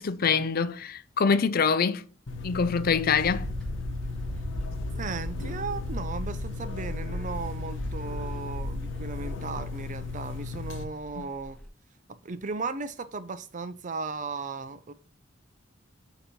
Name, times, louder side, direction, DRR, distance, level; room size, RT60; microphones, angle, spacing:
voice 1, 0.0-2.1 2.4-3.5 11.2-11.3, left 5 dB, 50° left, 0.5 m, -25 dB
sound 1, 2.3-10.8, left 4 dB, 70° left, 1.0 m, -37 dB
sound 2, 3.2-11.7, equal, 5° left, 1.9 m, -37 dB
voice 2, 5.0-11.6 12.2-14.9, right 4 dB, 40° right, 0.5 m, -36 dB
8.5 x 3.0 x 5.2 m
head